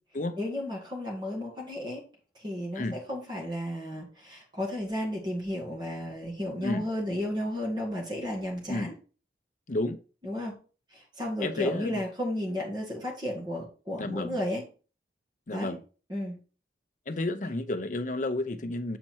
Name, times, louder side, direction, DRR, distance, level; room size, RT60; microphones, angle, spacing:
voice 1, 0.4-2.0 2.3-8.9 10.2-10.6 10.9-14.6 15.5-15.8 16.1-16.4 17.4-17.6, left 1 dB, 25° right, 2.1 m, -33 dB
voice 2, 9.7-10.0 11.4-12.0 14.0-14.4 15.5-15.8 17.1-19.0, left 2 dB, 45° left, 0.7 m, -31 dB
7.5 x 4.3 x 4.5 m
head